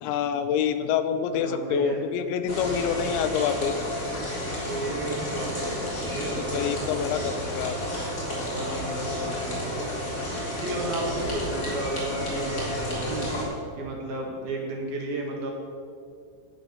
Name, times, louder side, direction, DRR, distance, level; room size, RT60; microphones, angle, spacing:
voice 1, 0.0-3.7 6.5-7.8, left 8 dB, 80° left, 10 dB, 2.9 m, -26 dB
voice 2, 1.3-2.0 4.7-5.8 6.1-6.8 8.5-9.8 10.6-15.5, right 2 dB, 60° right, 0 dB, 3.3 m, -33 dB
sound 1, 2.5-13.4, left 1 dB, 20° left, 3.7 m, -31 dB
17.5 x 7.8 x 6.9 m, 2.4 s
omnidirectional pair, 5.3 m